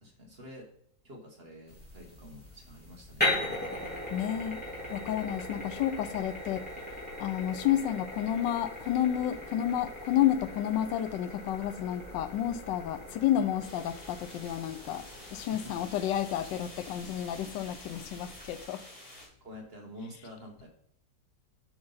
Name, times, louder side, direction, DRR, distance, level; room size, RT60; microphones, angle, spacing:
voice 1, 0.0-0.7 1.0-3.6 13.0-13.2 15.5-15.8 17.1-17.2 18.2-18.4 19.4-20.7, left 1 dB, 35° right, 1.3 m, -48 dB
sound 1, 1.7-18.6, left 1 dB, 5° left, 3.1 m, -39 dB
voice 2, 4.1-4.6 4.9-6.7 7.2-18.8, left 11 dB, 85° left, 1.3 m, -30 dB
sound 2, 13.6-19.3, left 1 dB, 60° left, 3.5 m, -49 dB
7.7 x 5.4 x 4.0 m
omnidirectional pair, 1.9 m